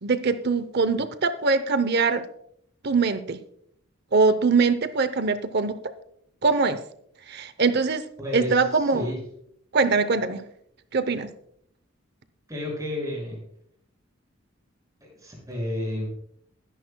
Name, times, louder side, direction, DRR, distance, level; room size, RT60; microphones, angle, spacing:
voice 1, 0.0-2.2 2.8-3.4 4.1-5.9 6.4-6.8 7.3-8.0 8.3-9.1 9.7-10.4 10.9-11.3, right 4 dB, 50° right, 12 dB, 0.7 m, -22 dB
voice 2, 8.2-9.2 12.5-13.4 15.2-16.1, left 1 dB, 15° right, -2 dB, 6.1 m, -31 dB
22.0 x 11.0 x 2.2 m, 0.69 s
head